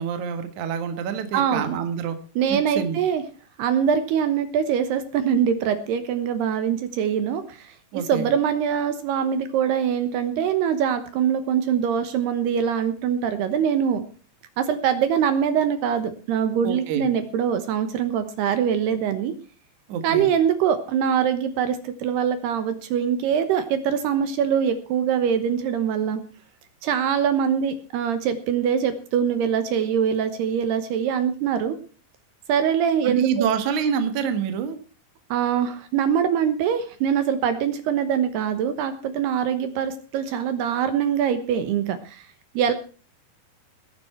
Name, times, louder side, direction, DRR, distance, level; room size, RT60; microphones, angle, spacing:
voice 1, 0.0-2.2 2.5-3.0 7.9-8.3 16.6-17.1 19.9-20.3 33.0-34.8, right 7 dB, 55° right, 8 dB, 2.4 m, -27 dB
voice 2, 1.3-1.8 2.4-3.2 3.6-14.0 14.6-19.3 20.0-26.2 26.8-31.8 32.5-33.5 35.3-42.3 42.5-42.7, right 8 dB, 70° right, 9 dB, 3.0 m, -23 dB
18.5 x 10.5 x 4.5 m, 0.37 s
omnidirectional pair, 5.1 m